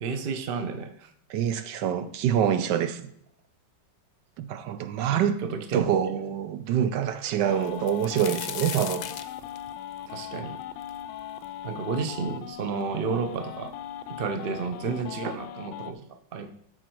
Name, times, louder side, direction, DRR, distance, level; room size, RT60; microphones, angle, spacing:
voice 1, 0.0-1.1 5.1-5.9 10.1-10.6 11.6-13.7 14.1-16.5, right 5 dB, 50° right, 0.7 m, -31 dB
voice 2, 1.3-3.0 4.4-5.4 5.7-9.1, right 9 dB, 70° right, 1.2 m, -26 dB
sound 1, 7.4-15.9, left 11 dB, 90° left, 1.4 m, -39 dB
sound 2, 7.6-11.4 11.9-12.0 12.8-12.9 13.2-13.8 14.7-14.8 15.2-15.4, left 10 dB, 70° left, 1.2 m, -38 dB
12.5 x 4.4 x 4.5 m
omnidirectional pair, 2.1 m